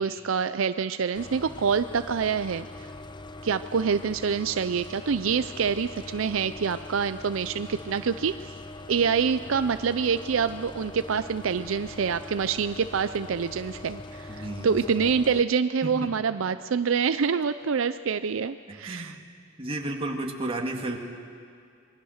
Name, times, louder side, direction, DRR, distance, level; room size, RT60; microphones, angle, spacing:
voice 1, 0.0-2.7 3.4-8.5 8.9-19.1, right 6 dB, 75° right, 12 dB, 0.5 m, -26 dB
sound 1, 1.1-15.4, left 2 dB, 25° left, 0.7 m, -42 dB
voice 2, 14.3-15.1 15.8-16.1 18.7-19.2 19.6-21.0, right 1 dB, 30° right, 2 dB, 2.1 m, -33 dB
26.0 x 21.5 x 6.5 m, 2.3 s
head